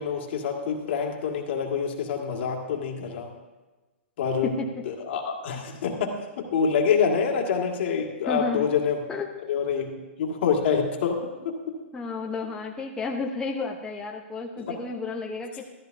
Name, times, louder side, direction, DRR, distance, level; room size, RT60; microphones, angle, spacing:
voice 1, 0.0-3.3 4.2-4.5 4.9-9.0 9.5-9.9 10.2-11.7 14.6-14.8, left 6 dB, 60° left, 2 dB, 1.9 m, -26 dB
voice 2, 4.4-4.8 8.3-8.7 9.1-9.3 11.9-15.6, left 4 dB, 10° left, 0 dB, 0.8 m, -32 dB
13.5 x 13.0 x 2.7 m, 1.2 s
hypercardioid pair, 130°, 7 cm